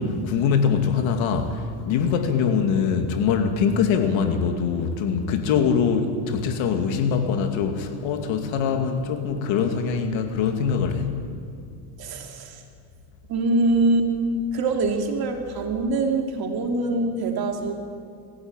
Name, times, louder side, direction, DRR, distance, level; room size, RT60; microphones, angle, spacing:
voice 1, 0.0-11.2, left 6 dB, 65° left, 6 dB, 2.5 m, -23 dB
voice 2, 12.0-12.6 13.3-14.1 14.5-17.7, right 2 dB, 45° right, 3 dB, 3.1 m, -24 dB
21.5 x 15.5 x 9.0 m, 2.4 s
supercardioid pair, 115°, 49 cm